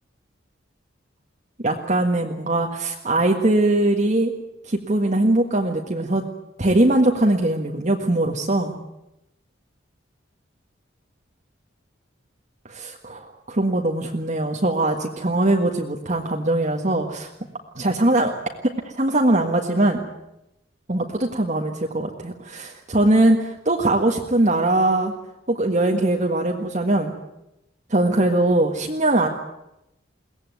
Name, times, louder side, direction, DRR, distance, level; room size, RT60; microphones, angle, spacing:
voice 1, 1.6-4.3 4.6-6.2 6.6-8.8 12.7-17.3 17.7-18.3 18.6-20.0 20.9-25.1 25.5-27.1 27.9-29.3, right 1 dB, 40° right, 1 dB, 1.7 m, -21 dB
22.5 x 18.5 x 9.4 m, 0.90 s
head